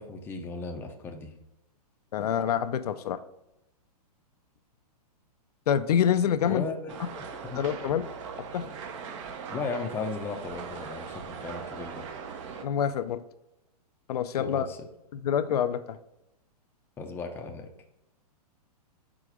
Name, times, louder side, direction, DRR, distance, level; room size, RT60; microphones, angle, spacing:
voice 1, 0.0-1.3 6.4-7.6 9.5-12.1 14.4-14.8 17.0-17.7, left 4 dB, 10° left, 3 dB, 0.5 m, -36 dB
voice 2, 2.1-3.2 5.7-6.6 7.6-8.0 8.5-8.7 12.6-13.2 14.1-14.7 15.1-16.0, left 9 dB, 75° left, 10 dB, 0.5 m, -26 dB
sound 1, 6.9-12.7, right 6 dB, 50° right, 0.8 m, -40 dB
4.9 x 3.8 x 5.0 m, 0.89 s
hypercardioid pair, 145°, 20 cm